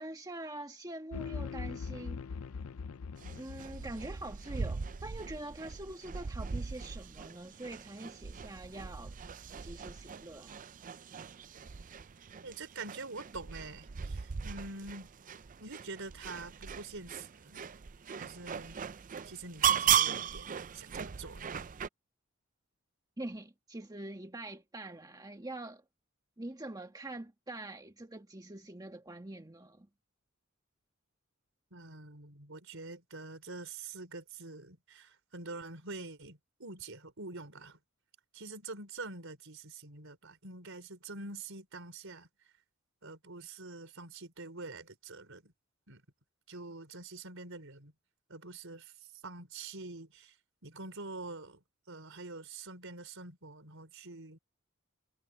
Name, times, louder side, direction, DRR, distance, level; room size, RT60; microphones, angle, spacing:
voice 1, 0.0-2.2 3.4-9.2 9.6-10.6 23.2-25.8 26.4-29.9, right 1 dB, 20° right, 1.6 m, -44 dB
sound 1, 1.1-4.5, left 5 dB, 90° left, 0.5 m, -41 dB
sound 2, 3.2-21.9, right 8 dB, 40° right, 0.5 m, -37 dB
voice 2, 12.4-15.1 15.6-17.6 18.2-18.8 19.2-21.6 31.7-37.8 38.3-42.3 43.0-45.5 45.9-46.0 46.5-47.9 48.3-48.9 49.2-50.3 50.6-54.4, right 3 dB, 65° right, 5.3 m, -46 dB
head